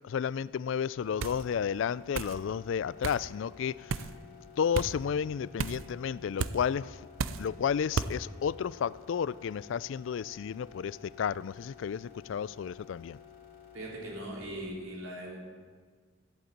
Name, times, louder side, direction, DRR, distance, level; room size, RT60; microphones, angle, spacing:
voice 1, 0.0-4.1 4.6-7.0 7.4-13.2, left 7 dB, 65° left, 0.3 m, -32 dB
sound 1, 1.0-14.4, left 8 dB, 45° left, 2.8 m, -53 dB
sound 2, 1.2-1.4 2.1-2.4 3.0-3.2 3.9-4.1 4.7-4.9 5.6-5.9 6.4-6.6 7.2-7.5 8.0-8.1, right 5 dB, 75° right, 0.5 m, -33 dB
voice 2, 13.7-15.5, right 1 dB, 90° right, 4.1 m, -40 dB
14.5 x 8.0 x 8.7 m
head